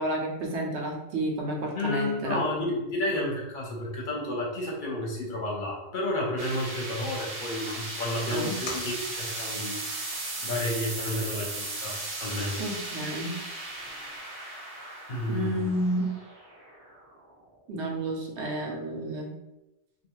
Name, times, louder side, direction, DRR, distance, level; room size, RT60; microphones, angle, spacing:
voice 1, 0.0-2.4 8.3-8.5 12.6-13.4 15.3-16.2 17.7-19.3, right 1 dB, 85° right, 0 dB, 1.0 m, -30 dB
voice 2, 1.7-9.8 10.4-12.6 15.1-15.6, left 1 dB, 55° left, -2 dB, 0.8 m, -31 dB
sound 1, 6.4-17.5, right 2 dB, 45° right, 0.5 m, -37 dB
sound 2, 8.4-11.9 12.2-14.2, left 3 dB, 90° left, 0.9 m, -47 dB
2.4 x 2.3 x 3.0 m, 0.95 s
omnidirectional pair, 1.1 m